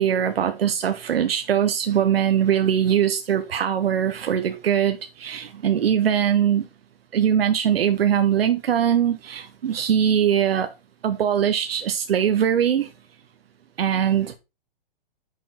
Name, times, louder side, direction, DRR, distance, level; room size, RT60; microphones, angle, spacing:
voice 1, 0.0-6.7 7.1-10.7 11.0-12.9 13.8-14.4, right 9 dB, 85° right, 0.7 m, -21 dB
6.1 x 4.5 x 4.0 m
hypercardioid pair, 130°, 29 cm